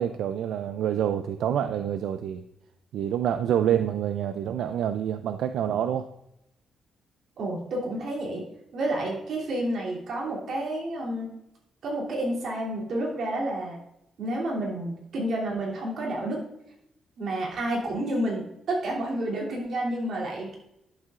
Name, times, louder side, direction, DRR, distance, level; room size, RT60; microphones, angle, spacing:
voice 1, 0.0-2.4 2.9-6.1, right 9 dB, 85° right, 9 dB, 0.3 m, -27 dB
voice 2, 7.4-8.4 8.7-11.3 11.8-13.8 14.2-16.4 17.2-20.6, right 1 dB, 60° right, -4 dB, 2.8 m, -30 dB
11.0 x 7.4 x 2.5 m, 0.84 s
cardioid pair, 140°, 0 cm